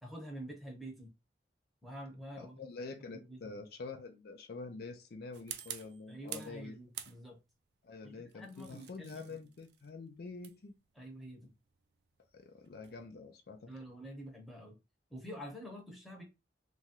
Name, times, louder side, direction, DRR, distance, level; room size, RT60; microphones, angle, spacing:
voice 1, 0.0-1.1 1.8-2.6 3.1-3.5 6.1-7.4 8.0-9.4 11.0-11.5 13.0-13.1 13.7-14.8 15.1-16.2, equal, ahead, 0.8 m, -47 dB
voice 2, 2.4-6.7 7.8-10.7 12.3-13.7, left 3 dB, 60° left, 0.4 m, -46 dB
sound 1, 5.3-6.6 6.9-7.6 8.3-13.0, right 11 dB, 65° right, 0.3 m, -48 dB
3.0 x 2.4 x 2.8 m
head